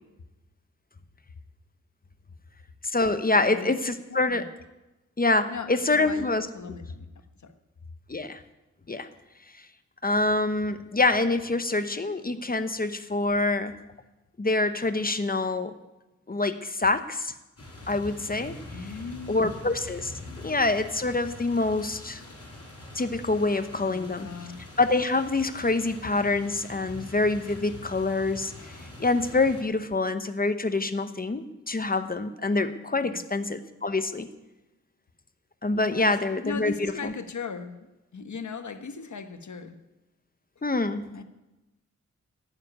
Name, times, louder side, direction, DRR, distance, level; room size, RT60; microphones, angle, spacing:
voice 1, 2.8-4.5 5.2-6.5 8.1-8.4 8.9-9.1 10.0-13.7 14.4-15.7 16.3-17.3 17.9-18.5 19.3-20.1 20.4-22.2 22.9-24.3 24.8-34.3 35.6-37.1 40.6-41.0, left 3 dB, 30° left, 10 dB, 0.9 m, -26 dB
voice 2, 4.1-4.5 5.5-7.5 18.7-19.6 20.3-20.6 23.7-24.6 33.0-33.2 35.9-36.1 36.4-39.8 41.1-41.2, left 5 dB, 70° left, 8 dB, 1.2 m, -38 dB
sound 1, 17.6-29.6, left 1 dB, 55° left, 5.0 m, -44 dB
14.5 x 7.1 x 9.8 m, 1.0 s
wide cardioid pair, 70°, 30 cm